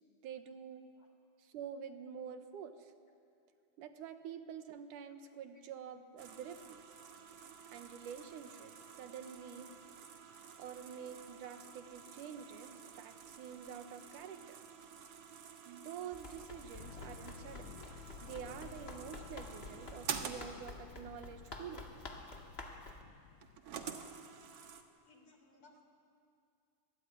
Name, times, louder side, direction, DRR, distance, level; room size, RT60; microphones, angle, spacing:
voice 1, 0.2-0.9 1.4-2.9 3.8-6.9 7.7-8.7 9.0-9.7 10.6-14.6 15.7-17.8 18.2-21.9, right 8 dB, 85° right, 9 dB, 2.8 m, -48 dB
sound 1, 6.2-24.8, right 7 dB, 55° right, 2.2 m, -50 dB
Run, 16.1-23.0, left 2 dB, 25° left, 1.6 m, -51 dB
sound 2, 16.8-23.6, left 10 dB, 70° left, 1.6 m, -54 dB
voice 2, 23.7-24.2 25.1-25.8, left 2 dB, 45° left, 4 dB, 4.3 m, -63 dB
26.5 x 22.0 x 10.0 m, 2.5 s
omnidirectional pair, 3.6 m